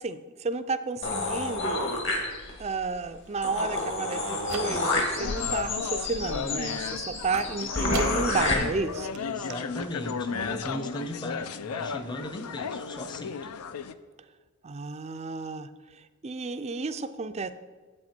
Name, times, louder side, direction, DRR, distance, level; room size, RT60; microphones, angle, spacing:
voice 1, 0.0-1.9 2.6-9.2 14.6-17.5, right 4 dB, 30° right, 11 dB, 0.4 m, -32 dB
sound 1, 1.0-2.7 3.1-3.2 3.4-8.5, left 2 dB, 55° left, 2.0 m, -30 dB
sound 2, 4.0-5.2 5.6-6.1 7.3-8.4 8.8-8.9 9.1-9.2 9.5-9.6, right 5 dB, 75° right, 0.8 m, -39 dB
sound 3, 4.9-13.9, left 5 dB, 80° left, 0.5 m, -34 dB
voice 2, 9.3-13.5, equal, 20° left, 8 dB, 0.7 m, -37 dB
8.8 x 7.9 x 4.4 m, 1.4 s
head